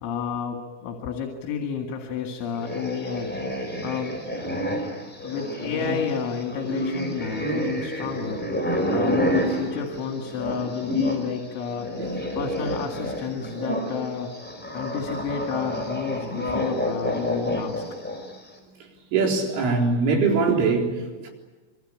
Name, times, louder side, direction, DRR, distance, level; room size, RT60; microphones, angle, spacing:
voice 1, 0.0-3.4 3.8-4.2 5.2-8.5 8.9-11.9 12.4-14.3 14.7-17.8, left 6 dB, 75° left, 3 dB, 4.4 m, -30 dB
sound 1, 2.5-11.3 11.6-18.4, equal, ahead, 4.1 m, -29 dB
voice 2, 19.1-21.3, right 4 dB, 75° right, 1 dB, 6.5 m, -22 dB
26.0 x 23.5 x 9.0 m, 1.3 s
omnidirectional pair, 5.6 m